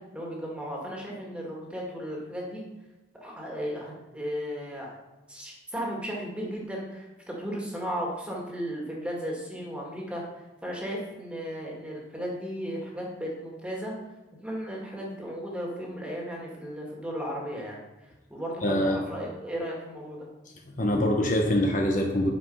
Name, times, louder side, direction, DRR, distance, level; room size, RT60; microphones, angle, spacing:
voice 1, 0.1-2.6 3.2-4.9 5.3-10.2 10.6-13.9 14.4-20.3, equal, 5° right, -2 dB, 2.1 m, -35 dB
voice 2, 18.6-19.0 20.7-22.3, left 1 dB, 45° left, 1 dB, 1.0 m, -24 dB
9.1 x 5.5 x 5.5 m, 1.1 s
head